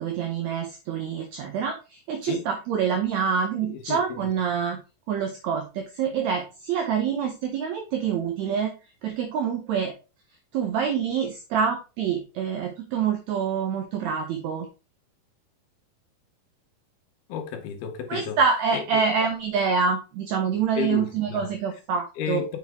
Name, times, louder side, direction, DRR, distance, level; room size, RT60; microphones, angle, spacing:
voice 1, 0.0-4.8 5.1-8.7 9.0-9.9 10.5-14.7 18.1-22.4, right 6 dB, 75° right, 1.7 m, -26 dB
voice 2, 3.6-4.0 17.3-18.4 18.7-19.0 20.8-21.5 22.2-22.6, left 8 dB, 80° left, 2.9 m, -32 dB
6.8 x 5.9 x 3.6 m
omnidirectional pair, 4.4 m